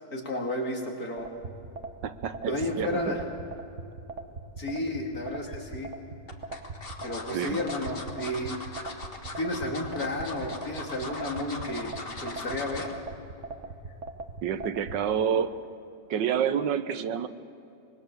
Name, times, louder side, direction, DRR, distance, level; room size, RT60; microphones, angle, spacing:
voice 1, 0.1-1.3 2.5-3.3 4.6-5.9 7.0-8.6 9.3-12.9, left 1 dB, 55° left, 1 dB, 2.9 m, -32 dB
sound 1, 1.2-15.0, right 3 dB, 45° right, 1.6 m, -39 dB
voice 2, 2.0-3.2 7.3-7.6 14.4-15.6 16.1-17.3, right 8 dB, 85° right, 11 dB, 1.6 m, -28 dB
sound 2, 5.0-5.6 6.3-13.0 13.4-13.6 13.9-14.0, left 3 dB, 35° left, 1.7 m, -40 dB
25.5 x 21.5 x 6.9 m, 2.7 s
omnidirectional pair, 1.9 m